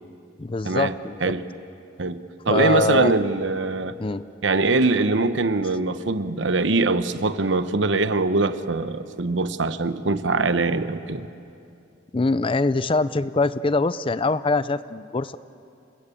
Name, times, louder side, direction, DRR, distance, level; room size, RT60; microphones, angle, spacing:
voice 1, 0.4-1.3 2.5-3.1 4.0-4.2 12.1-15.4, left 3 dB, 30° left, 15 dB, 0.5 m, -23 dB
voice 2, 2.0-4.0 4.4-11.3, right 3 dB, 75° right, 11 dB, 1.0 m, -22 dB
30.0 x 20.5 x 8.5 m, 2.6 s
head